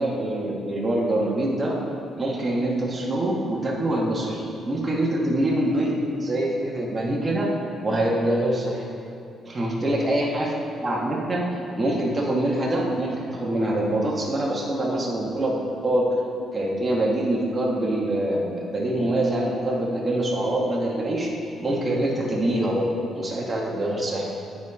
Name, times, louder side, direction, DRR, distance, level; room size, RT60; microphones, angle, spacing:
voice 1, 0.0-1.7 2.2-7.5 7.8-8.9 9.5-10.5 10.8-16.1 16.5-21.3 21.6-24.3, right 1 dB, 25° right, -3 dB, 1.3 m, -25 dB
8.9 x 4.3 x 5.0 m, 2.8 s
cardioid pair, 90°, 0 cm